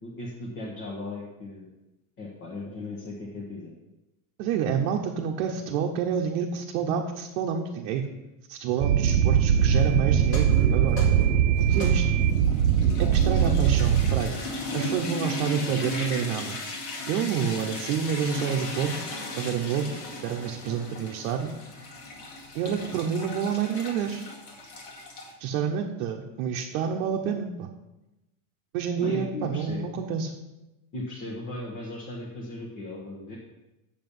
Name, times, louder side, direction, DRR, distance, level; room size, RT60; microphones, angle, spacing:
voice 1, 0.0-1.7 2.2-3.7 29.0-30.0 30.9-33.4, left 2 dB, 25° left, -3 dB, 1.1 m, -37 dB
voice 2, 4.4-8.1 8.5-11.1 11.6-12.2 13.0-14.4 14.7-16.6 17.1-18.9 19.4-19.9 20.2-21.5 22.5-24.3 25.4-27.7 28.7-30.4, right 7 dB, 55° right, 1 dB, 0.9 m, -28 dB
sound 1, 8.8-14.2, right 9 dB, 90° right, 1.0 m, -21 dB
sound 2, 10.2-25.3, left 2 dB, 70° left, 2.3 m, -36 dB
7.8 x 7.0 x 5.4 m, 0.99 s
supercardioid pair, 165°, 45 cm